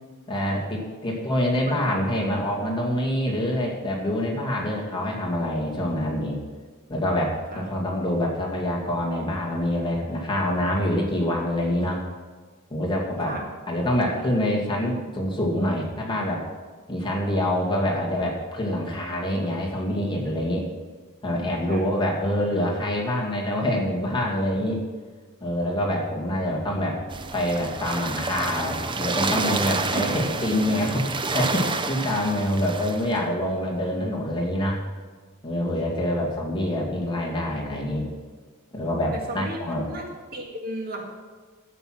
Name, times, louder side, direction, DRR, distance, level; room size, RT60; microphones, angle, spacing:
voice 1, 0.3-6.4 6.9-12.0 12.7-13.4 13.7-16.5 16.9-20.7 21.2-24.8 25.4-27.0 27.3-34.8 35.4-38.1 38.7-39.9, left 1 dB, 20° left, -2 dB, 2.3 m, -26 dB
voice 2, 1.7-2.1 7.5-7.7 13.3-13.5 21.7-21.9 29.9-30.1 39.1-39.6 39.9-41.0, right 1 dB, 45° right, 1 dB, 1.9 m, -35 dB
sound 1, 27.1-33.2, right 3 dB, 20° right, 0.7 m, -29 dB
12.5 x 8.3 x 6.0 m, 1.4 s
head